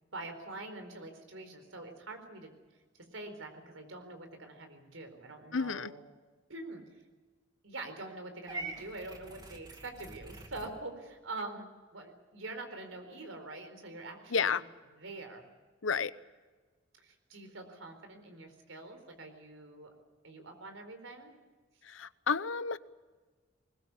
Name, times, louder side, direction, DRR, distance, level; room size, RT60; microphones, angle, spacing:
voice 1, 0.1-2.5 3.1-6.0 6.5-6.8 7.6-14.7 14.9-15.5 17.0-19.9 20.2-21.3, right 2 dB, 80° right, 6 dB, 4.3 m, -45 dB
voice 2, 5.5-5.9 14.3-14.6 15.8-16.1 21.9-22.8, left 5 dB, 75° left, 16 dB, 0.8 m, -31 dB
Purr / Meow, 8.5-10.7, right 2 dB, 20° right, 2.2 m, -44 dB
21.0 x 20.5 x 8.4 m, 1.3 s
head